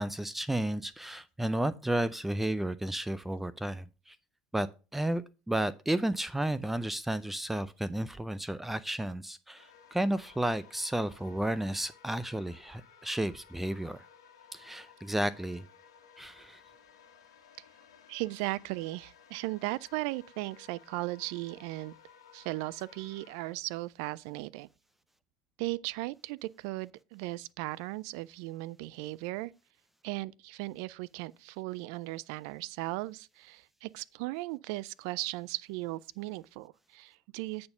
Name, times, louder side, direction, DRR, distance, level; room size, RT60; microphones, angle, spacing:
voice 1, 0.0-4.2 4.5-14.0 14.5-15.6 16.2-16.6, right 1 dB, 5° right, 0.5 m, -32 dB
sound 1, 9.6-23.5, left 7 dB, 85° left, 1.5 m, -58 dB
voice 2, 18.1-21.9 22.3-24.7 25.6-29.5 30.0-37.7, right 19 dB, 70° right, 0.3 m, -37 dB
8.5 x 4.3 x 5.5 m
hypercardioid pair, 75°, 3 cm